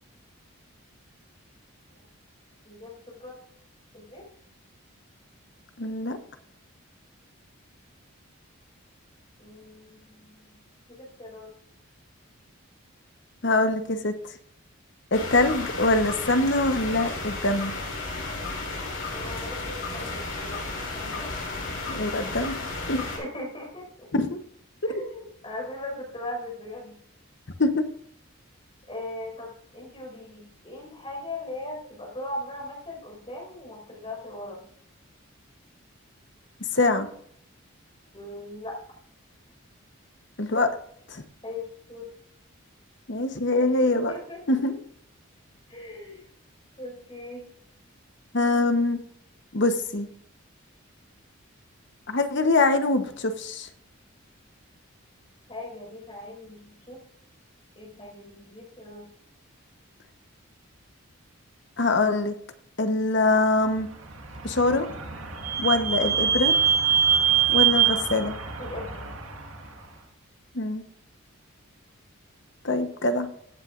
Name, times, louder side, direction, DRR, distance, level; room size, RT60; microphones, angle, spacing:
voice 1, 2.6-3.4 3.9-4.3 9.4-10.6 10.9-11.5 19.1-22.0 23.0-24.1 24.8-26.9 28.9-34.7 38.1-38.8 41.4-42.1 43.5-44.8 45.7-46.2 46.8-47.5 55.5-57.0 57.8-59.1 68.6-69.1, left 1 dB, 25° left, -1 dB, 5.3 m, -39 dB
voice 2, 5.8-6.2 13.4-14.1 15.1-17.7 21.9-23.0 24.1-24.4 27.6-27.8 36.7-37.1 40.4-40.7 41.1-41.2 43.1-44.1 44.5-44.7 48.3-49.0 49.5-50.1 52.1-53.7 61.8-62.3 62.8-63.9 64.4-64.9 65.6-66.5 67.5-68.3 70.5-70.8 72.6-73.3, left 2 dB, 55° left, 8 dB, 1.1 m, -24 dB
sound 1, 15.1-23.2, left 3 dB, 80° left, 5.3 m, -33 dB
Vehicle / Squeak, 64.0-69.6, right 8 dB, 75° right, 1.9 m, -24 dB
16.0 x 8.9 x 2.6 m, 0.66 s
head